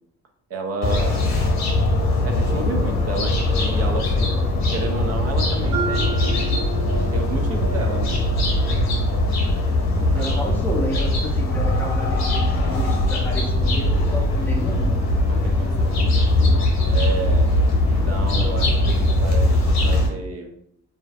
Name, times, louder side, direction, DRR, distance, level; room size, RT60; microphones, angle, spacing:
voice 1, 0.5-1.5 2.2-4.4 4.7-6.6 7.1-8.2 8.5-8.7 9.3-9.5 9.9-10.5 15.2-17.5 17.9-20.5, right 3 dB, 55° right, 4 dB, 0.4 m, -31 dB
sound 1, 0.8-20.1, left 1 dB, 60° left, 0.8 m, -20 dB
Mallet percussion, 5.7-9.8, right 6 dB, 75° right, 1.1 m, -33 dB
voice 2, 10.1-15.0, right 1 dB, 5° left, -1 dB, 0.5 m, -31 dB
2.5 x 2.3 x 2.3 m, 0.74 s
cardioid pair, 90°, 30 cm